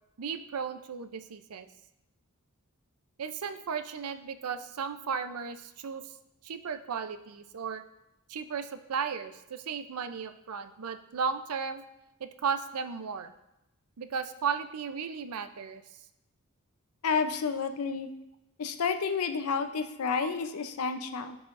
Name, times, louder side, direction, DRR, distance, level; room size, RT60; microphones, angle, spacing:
voice 1, 0.2-1.7 3.2-6.1 6.4-7.8 8.3-11.8 12.2-13.3 14.0-15.8 20.2-20.3, right 6 dB, 90° right, 10 dB, 0.5 m, -35 dB
voice 2, 17.0-18.1 18.6-21.4, left 5 dB, 85° left, 8 dB, 0.6 m, -30 dB
14.5 x 4.8 x 2.5 m, 0.87 s
head